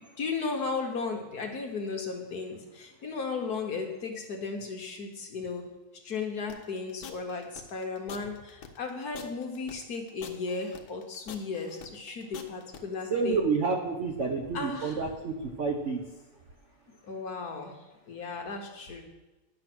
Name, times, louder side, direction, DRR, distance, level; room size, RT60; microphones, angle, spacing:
voice 1, 0.0-5.6 6.0-13.5 14.5-15.0 17.1-17.7 18.1-19.0, left 4 dB, 50° left, 2 dB, 1.5 m, -35 dB
sound 1, 6.5-12.8, left 7 dB, 70° left, 1.6 m, -46 dB
voice 2, 13.1-16.0, right 4 dB, 70° right, 3 dB, 0.7 m, -29 dB
10.5 x 6.4 x 6.0 m, 1.1 s
omnidirectional pair, 2.4 m